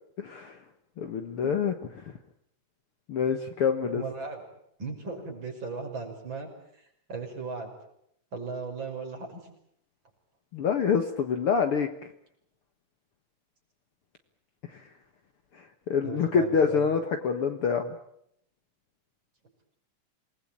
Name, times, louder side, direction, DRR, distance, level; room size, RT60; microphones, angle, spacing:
voice 1, 0.2-0.6 1.0-1.7 3.1-4.0 10.5-11.9 14.7-14.8 15.9-18.0, left 6 dB, 55° left, 6 dB, 2.1 m, -26 dB
voice 2, 3.9-4.4 4.8-7.7 8.3-9.4 16.0-16.9, right 4 dB, 40° right, 2 dB, 6.6 m, -37 dB
28.0 x 20.5 x 8.8 m, 0.74 s
omnidirectional pair, 3.4 m